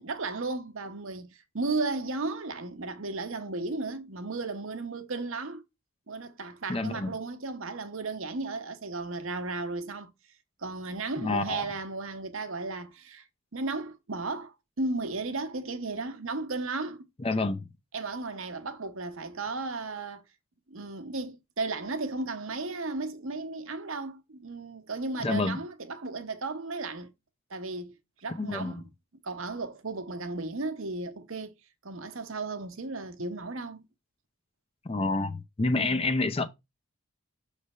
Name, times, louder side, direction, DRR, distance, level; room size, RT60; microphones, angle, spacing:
voice 1, 0.0-5.6 6.1-10.1 10.6-13.2 13.5-17.1 17.9-20.2 20.7-27.1 27.5-27.9 28.2-28.8 29.2-31.5 31.8-33.9 35.7-36.0, right 3 dB, 65° right, 0.9 m, -35 dB
voice 2, 6.7-7.1 11.2-11.7 17.2-17.7 25.2-25.6 28.4-28.9 34.8-36.5, left 3 dB, 25° left, 0.5 m, -28 dB
6.3 x 3.3 x 5.4 m
head